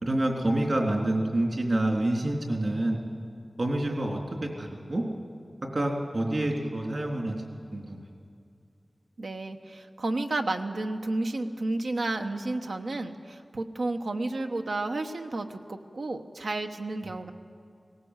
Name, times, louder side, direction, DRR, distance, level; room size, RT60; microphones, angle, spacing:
voice 1, 0.0-3.0 3.6-5.0 5.7-7.4 7.7-8.0, right 1 dB, 60° right, 1 dB, 3.4 m, -27 dB
voice 2, 9.2-17.3, right 2 dB, 90° right, 5 dB, 1.1 m, -31 dB
18.5 x 18.0 x 8.1 m, 2.4 s
wide cardioid pair, 65°, 0 cm